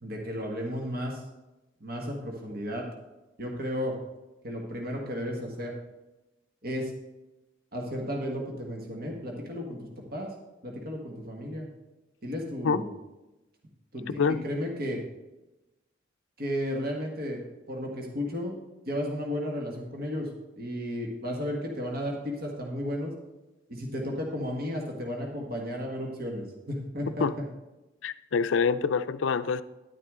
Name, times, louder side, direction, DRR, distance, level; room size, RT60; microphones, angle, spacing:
voice 1, 0.0-1.2 1.8-2.8 3.4-3.9 4.4-5.7 6.6-6.9 7.7-9.8 10.1-10.3 10.6-11.7 12.2-12.9 13.9-15.0 16.4-17.4 17.7-18.6 18.8-20.3 20.6-23.1 23.7-27.4, equal, 50° right, 0 dB, 1.5 m, -33 dB
voice 2, 28.0-29.6, left 5 dB, 85° left, 13 dB, 0.4 m, -26 dB
10.5 x 9.4 x 3.7 m, 1.0 s
head